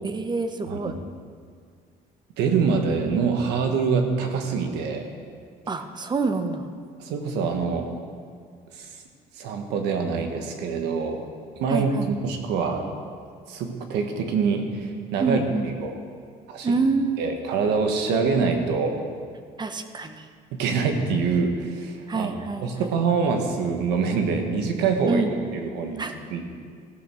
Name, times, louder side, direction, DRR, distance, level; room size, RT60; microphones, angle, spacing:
voice 1, 0.0-1.0 5.7-6.7 11.7-12.1 15.2-15.7 16.6-17.3 19.6-20.3 22.1-22.9 25.1-25.3 26.0-26.1, right 4 dB, 25° right, 8 dB, 0.9 m, -26 dB
voice 2, 2.4-5.1 7.0-7.9 8.7-9.0 9.3-11.2 11.6-12.9 13.5-16.0 16.5-16.7 17.2-19.0 20.5-22.3 22.6-25.2 25.5-26.0 26.3-26.5, right 5 dB, 90° right, 5 dB, 1.4 m, -25 dB
15.0 x 6.7 x 6.2 m, 2.1 s
cardioid pair, 110°, 17 cm